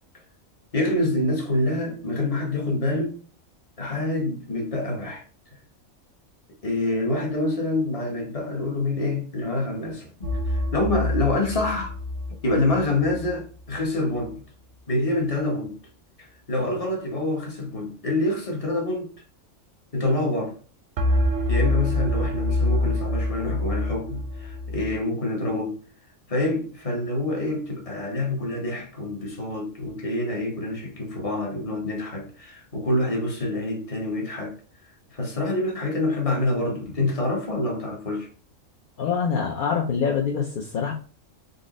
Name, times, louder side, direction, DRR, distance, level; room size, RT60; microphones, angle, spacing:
voice 1, 0.7-3.1 3.8-5.2 6.6-12.0 12.4-14.4 14.9-15.8 16.2-19.1 19.9-20.5 21.5-25.8 26.3-34.5 35.1-38.3, left 2 dB, 30° left, 0.9 m, -26 dB
sound 1, 10.2-13.3 21.0-24.9, left 1 dB, 55° right, 0.7 m, -26 dB
voice 2, 39.0-40.9, left 6 dB, 60° left, 0.5 m, -25 dB
3.9 x 2.0 x 3.6 m
omnidirectional pair, 1.4 m